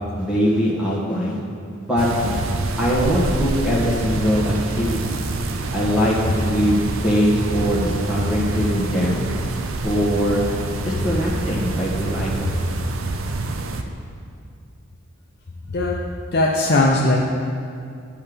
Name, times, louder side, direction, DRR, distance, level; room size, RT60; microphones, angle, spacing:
voice 1, 0.2-1.4 1.9-2.3 2.8-5.2 5.7-9.2 9.8-10.4 10.8-12.5, equal, 5° right, -6 dB, 1.5 m, -21 dB
sound 1, 2.0-13.8, right 2 dB, 75° right, 0.6 m, -26 dB
voice 2, 16.3-17.2, left 2 dB, 50° left, -2 dB, 0.6 m, -18 dB
10.5 x 5.6 x 5.1 m, 2.4 s
head